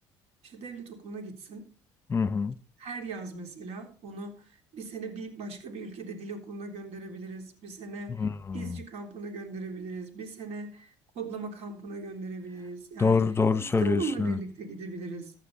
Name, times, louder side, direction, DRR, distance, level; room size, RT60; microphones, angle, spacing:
voice 1, 0.4-1.6 2.8-8.3 8.5-13.2 13.8-15.3, right 4 dB, 65° right, 3.7 m, -39 dB
voice 2, 2.1-2.6 8.1-8.8 13.0-14.4, left 5 dB, 20° left, 1.0 m, -26 dB
15.0 x 9.4 x 4.2 m
supercardioid pair, 80°, 11 cm